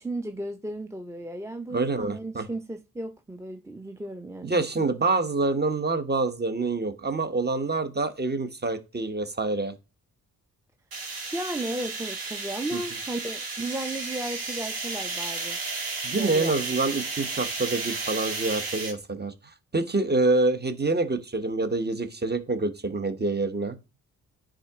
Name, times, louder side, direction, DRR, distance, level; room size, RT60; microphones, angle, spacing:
voice 1, 0.0-5.0 11.3-15.6 16.1-16.5, right 1 dB, 10° right, 0.6 m, -35 dB
voice 2, 1.7-2.5 4.4-9.7 12.7-12.8 16.0-19.3 19.7-23.8, right 3 dB, 30° right, 1.1 m, -26 dB
sound 1, 10.9-18.9, right 3 dB, 75° right, 2.0 m, -33 dB
9.7 x 3.8 x 3.6 m
supercardioid pair, 55°, 36 cm